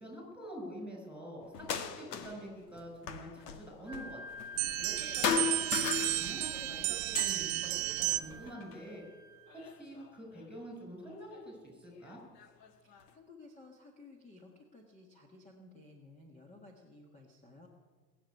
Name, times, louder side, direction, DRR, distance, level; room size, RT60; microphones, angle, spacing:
voice 1, 0.0-4.4 4.8-9.0 9.5-12.2, equal, ahead, 0 dB, 5.6 m, -46 dB
sound 1, 1.5-2.5 2.7-5.0 5.2-6.6 7.0-8.8 9.5-10.4 11.3-11.4 12.1-13.1, left 7 dB, 75° left, 1.7 m, -37 dB
Wind instrument woodwind instrument, 3.9-9.7, left 1 dB, 50° left, 5.6 m, -48 dB
sound 2, 4.6-8.5, right 19 dB, 55° right, 0.8 m, -33 dB
voice 2, 12.8-17.7, left 2 dB, 15° left, 2 dB, 1.7 m, -56 dB
20.5 x 7.3 x 9.5 m, 1.5 s
supercardioid pair, 135°, 48 cm